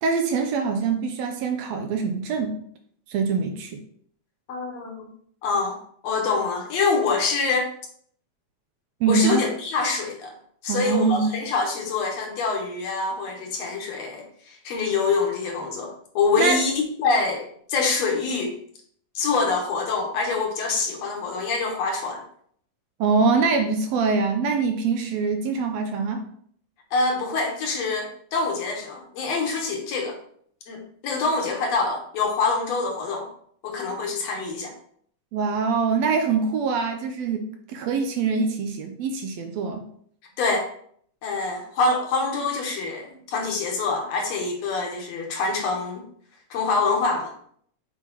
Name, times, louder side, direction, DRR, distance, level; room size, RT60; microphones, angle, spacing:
voice 1, 0.0-2.6 3.1-3.8 9.0-9.4 10.7-11.4 16.4-16.6 23.0-26.2 35.3-39.8, right 4 dB, 75° right, 5 dB, 1.7 m, -24 dB
voice 2, 4.5-5.1 5.4-7.7 9.1-10.3 10.6-18.5 19.2-22.2 26.9-30.2 30.7-33.3 33.6-34.7 40.4-40.7 41.2-46.1 46.5-47.3, left 4 dB, 70° left, 1 dB, 2.1 m, -25 dB
7.8 x 4.6 x 2.9 m, 0.62 s
omnidirectional pair, 3.3 m